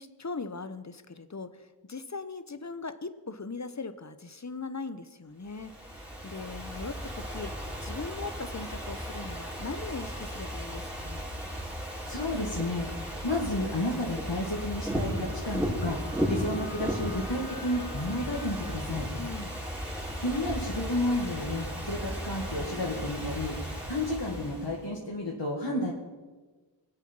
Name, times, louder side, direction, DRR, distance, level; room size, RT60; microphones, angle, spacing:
voice 1, 0.0-1.6 1.9-6.0 6.2-7.6 7.8-11.3 19.2-19.6, left 4 dB, 35° left, 12 dB, 0.9 m, -39 dB
Ocean / Fireworks, 5.5-24.8, equal, 5° right, 4.0 m, -35 dB
voice 2, 12.1-12.9 13.2-19.1 20.2-23.5 23.9-25.9, left 1 dB, 65° left, -3 dB, 2.0 m, -31 dB
Wind instrument woodwind instrument, 14.5-18.9, left 2 dB, 45° right, 3.4 m, -47 dB
23.0 x 8.2 x 5.4 m, 1.3 s
wide cardioid pair, 45°, 46 cm